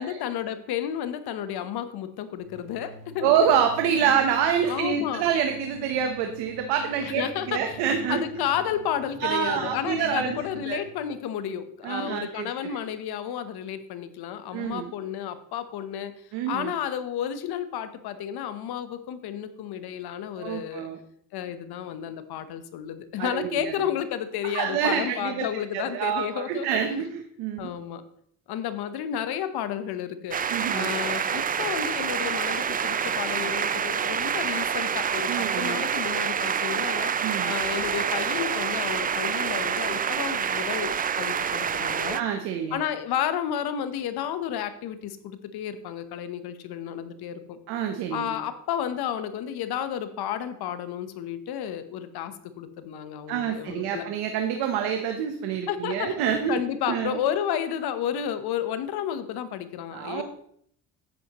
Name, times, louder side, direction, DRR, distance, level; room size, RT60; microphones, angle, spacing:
voice 1, 0.0-3.3 4.7-5.3 7.0-7.8 8.1-16.1 16.5-20.9 21.3-27.0 27.6-28.0 28.5-30.4 30.7-37.1 37.5-42.2 42.7-47.6 48.1-54.1 55.7-56.2 56.5-60.2, left 9 dB, 75° left, 11 dB, 1.0 m, -32 dB
sound 1, 2.4-11.0, right 3 dB, 70° right, 4.6 m, -44 dB
voice 2, 3.2-8.5 9.2-10.4 10.7-10.8 11.8-12.8 14.5-14.9 16.3-16.7 20.4-21.0 23.2-23.7 24.4-25.5 25.7-27.7 30.5-30.9 35.3-35.8 37.2-37.5 42.1-42.8 47.7-48.3 53.3-57.2 59.9-60.2, right 8 dB, 90° right, 5 dB, 1.0 m, -27 dB
sound 2, 30.3-42.2, right 7 dB, 25° right, 0.3 m, -27 dB
10.0 x 9.3 x 3.0 m, 0.66 s
cardioid pair, 90°, 38 cm